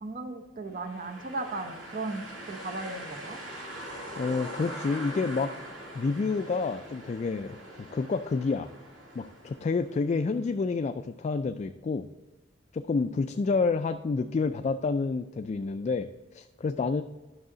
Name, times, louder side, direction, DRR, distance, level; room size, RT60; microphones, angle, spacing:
voice 1, 0.0-3.4, right 2 dB, 45° right, 6 dB, 0.8 m, -36 dB
sound 1, 0.7-10.5, right 1 dB, 75° right, 2.8 m, -43 dB
voice 2, 4.2-5.5 5.9-8.7 9.2-12.1 12.7-17.0, left 4 dB, 35° left, 8 dB, 0.3 m, -29 dB
11.0 x 6.3 x 3.9 m, 1.2 s
head